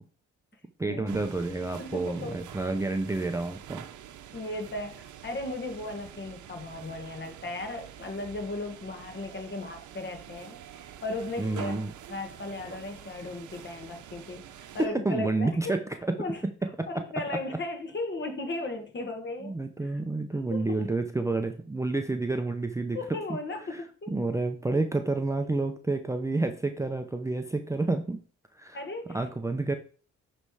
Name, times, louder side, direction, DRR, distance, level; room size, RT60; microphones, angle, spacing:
voice 1, 0.8-3.8 11.4-11.9 14.8-15.8 16.1-16.2 16.8-17.1 19.4-23.0 23.7-23.8 24.1-28.2 28.5-28.8 29.1-29.7, right 2 dB, 10° right, 0.6 m, -29 dB
sound 1, 1.1-14.9, right 10 dB, 75° right, 0.8 m, -46 dB
voice 2, 1.8-2.5 4.3-11.8 12.1-15.8 16.2-16.4 16.9-19.6 19.8-20.0 20.5-21.0 22.9-24.1 28.7-29.2, left 2 dB, 40° left, 1.7 m, -36 dB
9.7 x 3.3 x 4.8 m
cardioid pair, 90°, 30 cm